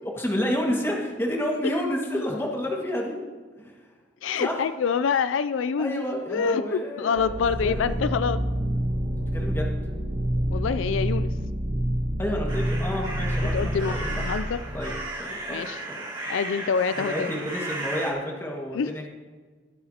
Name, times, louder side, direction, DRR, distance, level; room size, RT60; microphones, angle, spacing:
voice 1, 0.0-3.2 3.6-3.7 4.4-4.6 5.8-8.0 9.1-9.7 12.2-14.1 14.7-16.0 17.0-19.1, equal, 10° left, -1 dB, 1.8 m, -30 dB
voice 2, 4.2-6.0 6.3-8.4 10.5-11.3 13.5-14.6 15.5-15.8 16.3-17.3 18.7-18.9, left 6 dB, 75° left, 13 dB, 0.4 m, -26 dB
sound 1, 7.2-15.0, equal, 55° right, 1.6 m, -28 dB
sound 2, 12.5-18.1, right 2 dB, 25° right, 2.5 m, -35 dB
22.0 x 7.9 x 2.9 m, 1.4 s
head